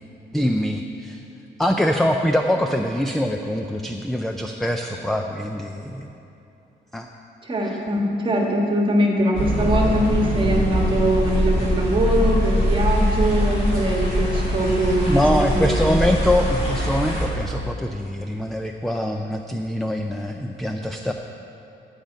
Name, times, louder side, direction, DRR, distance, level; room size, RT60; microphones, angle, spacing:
voice 1, 0.3-1.2 1.6-6.1 6.9-7.1 7.6-7.7 15.0-21.1, equal, ahead, 4 dB, 0.3 m, -23 dB
voice 2, 7.4-15.8, right 1 dB, 25° right, -1 dB, 1.5 m, -22 dB
sound 1, 9.3-17.3, equal, 30° left, 2.6 m, -22 dB
14.5 x 5.1 x 8.9 m, 2.8 s
wide cardioid pair, 175°, 19 cm